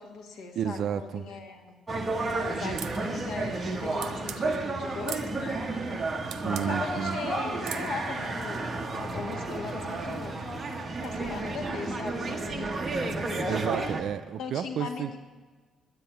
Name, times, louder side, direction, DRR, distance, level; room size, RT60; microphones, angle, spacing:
voice 1, 0.0-1.7 2.3-5.6 6.5-10.4 11.0-13.6 14.4-15.2, left 4 dB, 70° left, 4 dB, 1.7 m, -39 dB
voice 2, 0.6-1.3 6.4-7.2 13.4-15.2, right 8 dB, 50° right, 12 dB, 0.4 m, -31 dB
sound 1, 1.9-14.0, right 2 dB, 15° right, 1.1 m, -32 dB
sound 2, 2.8-3.0 4.0-4.4 5.1-5.3 6.3-6.7 7.6-7.9, right 10 dB, 70° right, 0.8 m, -38 dB
10.5 x 9.9 x 9.1 m, 1.4 s
cardioid pair, 170°, 0 cm